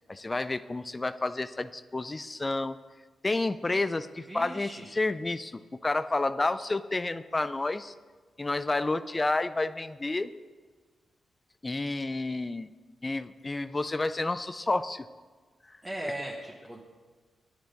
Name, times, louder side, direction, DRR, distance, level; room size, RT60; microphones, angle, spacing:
voice 1, 0.1-2.8 3.2-7.9 8.4-10.3 11.6-12.7 13.0-15.1 15.7-15.8 16.0-16.1, left 2 dB, 25° left, 13 dB, 0.4 m, -30 dB
voice 2, 4.3-4.9 15.8-16.8, right 1 dB, 20° right, -3 dB, 1.2 m, -38 dB
10.0 x 7.6 x 5.2 m, 1.4 s
cardioid pair, 70°, 0 cm